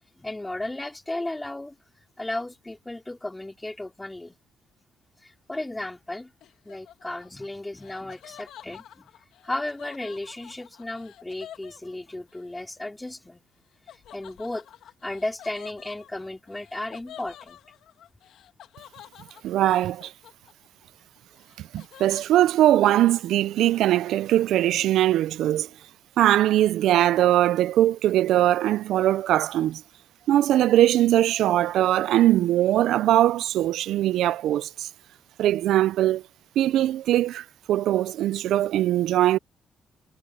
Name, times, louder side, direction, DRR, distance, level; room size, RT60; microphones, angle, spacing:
voice 1, 0.2-1.8 2.2-4.4 5.2-6.3 6.7-9.1 9.4-13.4 14.1-14.7 15.0-17.6, left 2 dB, 15° left, 3.6 m, -34 dB
Laughter, 6.4-12.4 13.9-20.8 21.2-22.6, left 11 dB, 80° left, 2.0 m, -49 dB
voice 2, 19.4-20.1 21.6-25.7 26.2-29.8 30.3-34.9 35.4-36.2 36.6-39.4, right 13 dB, 80° right, 0.4 m, -21 dB
cardioid pair, 90°, 0 cm